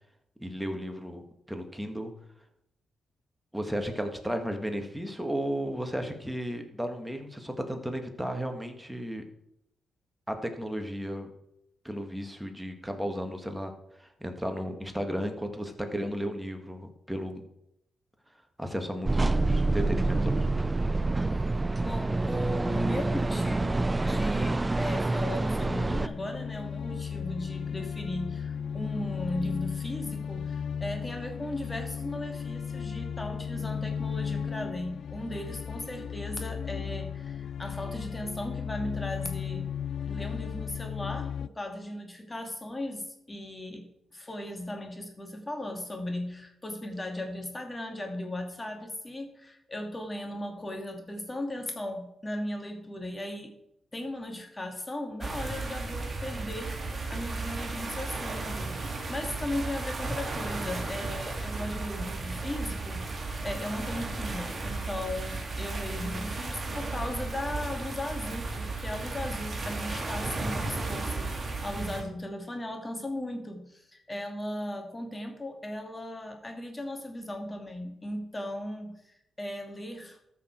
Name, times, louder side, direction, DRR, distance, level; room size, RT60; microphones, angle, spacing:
voice 1, 0.4-1.2 1.5-2.1 3.5-9.2 10.3-11.3 11.8-13.7 14.0-17.4 18.6-20.7, equal, 5° right, 5 dB, 1.9 m, -34 dB
sound 1, 19.1-26.1, right 2 dB, 20° right, 0.4 m, -27 dB
voice 2, 21.8-39.7 40.1-53.5 53.9-56.8 57.1-80.3, left 1 dB, 20° left, 4 dB, 2.3 m, -37 dB
sound 2, 25.0-41.5, left 7 dB, 65° left, 0.3 m, -35 dB
sound 3, 55.2-72.0, right 3 dB, 40° right, 2.5 m, -34 dB
13.5 x 6.1 x 4.6 m, 0.81 s
cardioid pair, 65°, 0 cm